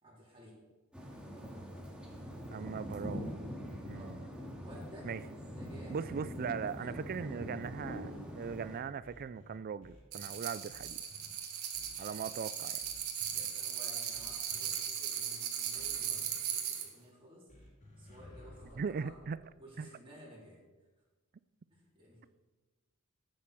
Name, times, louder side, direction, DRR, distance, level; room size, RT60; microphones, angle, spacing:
voice 1, 0.0-0.6 3.9-4.2 4.6-5.1 5.5-6.0 6.7-7.4 13.3-17.5 18.0-19.2 19.5-20.6 21.7-22.3, equal, 25° right, -5 dB, 3.8 m, -55 dB
sound 1, 0.9-8.8, equal, 5° right, 2.0 m, -43 dB
voice 2, 2.5-3.3 3.9-4.2 5.0-5.2 5.9-11.0 12.0-12.8 18.8-19.4 19.8-19.9, right 6 dB, 45° right, 17 dB, 0.4 m, -39 dB
sound 2, 7.8-10.4 10.7-11.3 11.7-12.3 12.8-13.4 14.1-14.7 15.8-16.3 17.5-19.4, left 1 dB, 35° left, 4.4 m, -56 dB
sound 3, 10.1-16.9, right 9 dB, 80° right, 1.9 m, -38 dB
14.0 x 9.1 x 6.2 m, 1.2 s
head